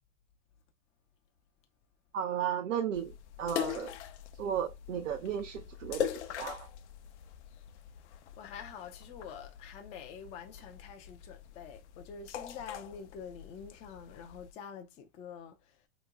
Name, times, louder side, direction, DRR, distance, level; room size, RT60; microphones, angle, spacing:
voice 1, 2.1-3.1 3.4-3.9 4.4-6.7, right 9 dB, 85° right, 0.8 m, -34 dB
sound 1, 2.9-14.5, left 11 dB, 65° left, 0.6 m, -42 dB
voice 2, 8.4-15.8, left 7 dB, 20° left, 0.4 m, -46 dB
3.0 x 2.2 x 3.6 m
hypercardioid pair, 135°, 37 cm